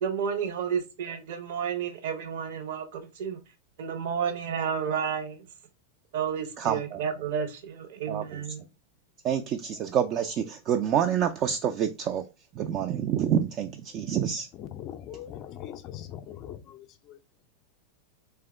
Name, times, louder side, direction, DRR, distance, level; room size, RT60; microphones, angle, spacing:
voice 1, 0.0-3.4 3.8-5.5 6.1-8.6, right 7 dB, 55° right, 0.8 m, -31 dB
voice 2, 6.6-7.0 8.1-8.4 9.2-12.2 12.5-14.5, right 9 dB, 35° right, 0.3 m, -27 dB
voice 3, 14.5-17.4, left 11 dB, 35° left, 0.4 m, -41 dB
3.4 x 3.3 x 3.3 m
figure-of-eight pair, 90°, 0 cm